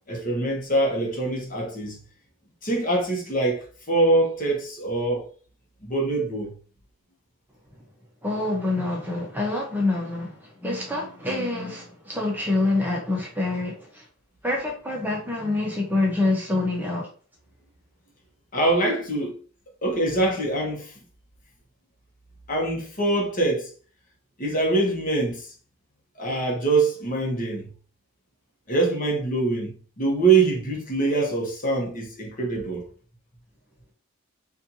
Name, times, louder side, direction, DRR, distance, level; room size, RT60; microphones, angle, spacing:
voice 1, 0.1-2.0 2.6-5.3 5.8-6.5 18.5-19.3 19.8-20.9 22.5-23.7 24.4-25.5 26.2-27.7 28.7-29.7 30.0-32.9, right 2 dB, 40° left, 1.1 m, -24 dB
voice 2, 8.2-14.0 14.4-17.1, left 2 dB, 10° right, 0.8 m, -26 dB
4.3 x 2.6 x 2.7 m
head